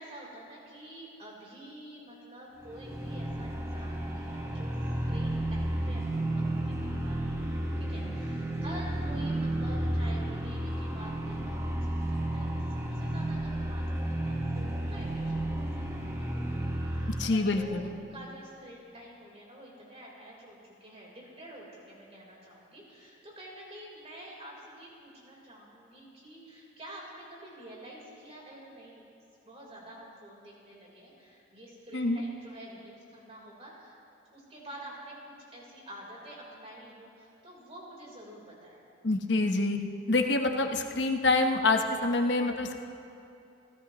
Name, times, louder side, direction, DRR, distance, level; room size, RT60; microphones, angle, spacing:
voice 1, 0.0-4.7 5.0-12.5 12.9-29.1 29.4-34.0 34.3-38.8, right 1 dB, 35° right, -4 dB, 4.0 m, -48 dB
sound 1, 2.6-17.4, right 1 dB, 15° right, 1.4 m, -32 dB
voice 2, 17.2-17.9 31.9-32.2 39.0-39.8 40.1-42.8, left 2 dB, 70° left, 4 dB, 1.0 m, -26 dB
29.5 x 13.5 x 3.1 m, 2.7 s
head